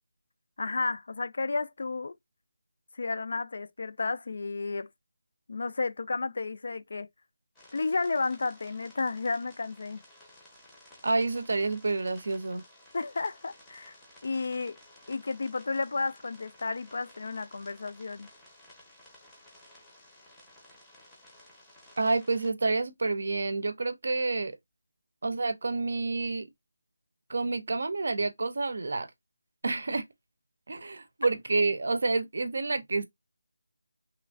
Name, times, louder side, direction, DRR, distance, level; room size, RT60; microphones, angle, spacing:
voice 1, 0.6-2.2 2.9-4.9 5.5-7.1 7.7-10.0 12.9-14.0 14.2-14.8 15.1-18.3, left 3 dB, 50° left, 0.3 m, -32 dB
sound 1, 7.5-22.5, left 1 dB, 5° left, 0.6 m, -55 dB
voice 2, 11.0-12.6 22.0-24.5 25.2-26.5 27.3-29.1 29.6-30.0 30.7-33.0, right 3 dB, 60° right, 0.5 m, -29 dB
3.1 x 2.4 x 2.4 m
figure-of-eight pair, 175°, 0 cm